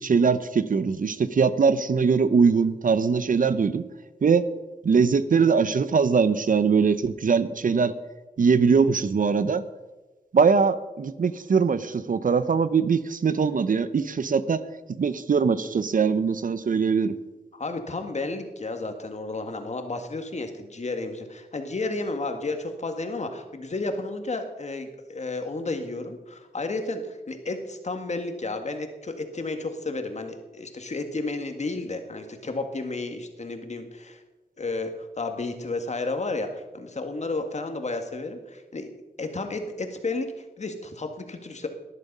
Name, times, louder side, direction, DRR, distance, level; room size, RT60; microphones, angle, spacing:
voice 1, 0.0-3.8 4.2-4.4 4.8-7.9 8.4-9.6 10.3-14.6 15.0-17.1, right 5 dB, 60° right, 14 dB, 0.8 m, -21 dB
voice 2, 17.5-34.2 34.6-38.9 39.2-41.7, left 3 dB, 45° left, 6 dB, 1.9 m, -32 dB
18.5 x 11.0 x 5.5 m, 1.2 s
wide cardioid pair, 105°, 16 cm